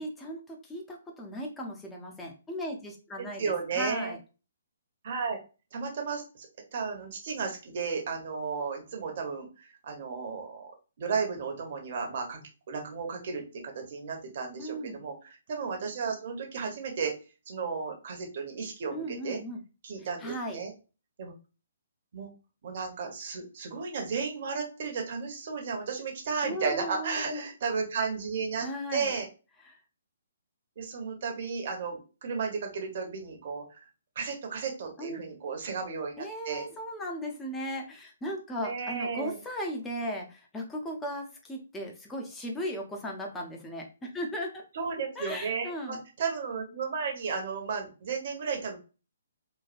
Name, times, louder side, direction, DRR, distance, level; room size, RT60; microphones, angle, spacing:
voice 1, 0.0-4.2 14.6-15.0 18.9-19.6 20.2-20.6 26.4-27.5 28.6-29.1 29.6-29.8 35.0-35.2 36.2-44.7 45.2-46.0, equal, 10° left, 1 dB, 0.6 m, -37 dB
voice 2, 3.2-4.1 5.0-5.4 5.7-6.5 6.7-10.7 11.0-12.4 12.7-17.1 17.5-19.4 19.8-20.7 21.2-21.3 22.1-22.3 22.6-29.3 30.8-33.8 34.2-36.7 38.6-39.4 44.7-48.8, right 5 dB, 50° right, 2 dB, 0.8 m, -34 dB
3.1 x 2.2 x 2.5 m, 0.32 s
figure-of-eight pair, 135°, 0 cm